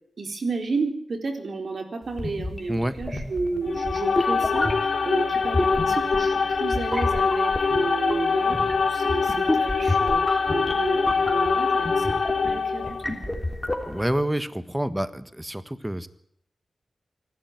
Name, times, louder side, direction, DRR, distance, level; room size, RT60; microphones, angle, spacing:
voice 1, 0.2-8.6 8.9-12.2 12.4-13.3, right 3 dB, 70° right, 6 dB, 4.2 m, -32 dB
sound 1, 2.1-14.2, left 1 dB, 20° left, 3.5 m, -31 dB
sound 2, 3.6-13.1, left 5 dB, 80° left, 4.2 m, -24 dB
voice 2, 13.9-16.1, right 1 dB, 10° right, 13 dB, 1.5 m, -27 dB
25.5 x 12.0 x 9.6 m, 0.68 s
cardioid pair, 65°, 0 cm